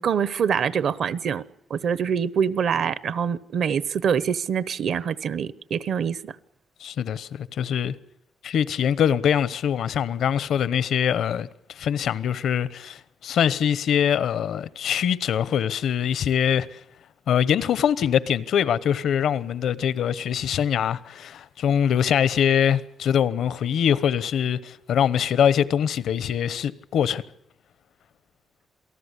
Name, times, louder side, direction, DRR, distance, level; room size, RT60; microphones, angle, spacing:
voice 1, 0.0-1.4 1.7-6.3, right 7 dB, 60° right, 1.0 m, -25 dB
voice 2, 6.8-7.9 8.4-11.5 11.7-16.8 17.3-27.2, left 8 dB, 75° left, 1.0 m, -23 dB
28.0 x 18.5 x 8.3 m
wide cardioid pair, 150°, 0 cm